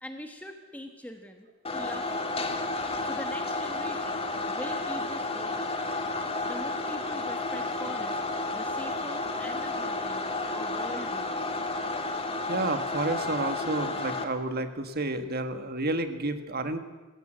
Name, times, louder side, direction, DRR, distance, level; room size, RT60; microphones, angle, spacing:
voice 1, 0.0-1.5 1.7-2.5 3.0-5.9 6.4-8.2 8.5-11.5, equal, 10° left, 5 dB, 1.3 m, -43 dB
sound 1, 1.6-14.2, left 2 dB, 30° left, 2.0 m, -32 dB
voice 2, 12.5-16.8, right 2 dB, 50° right, 8 dB, 1.7 m, -30 dB
21.0 x 16.5 x 7.8 m, 1.2 s
head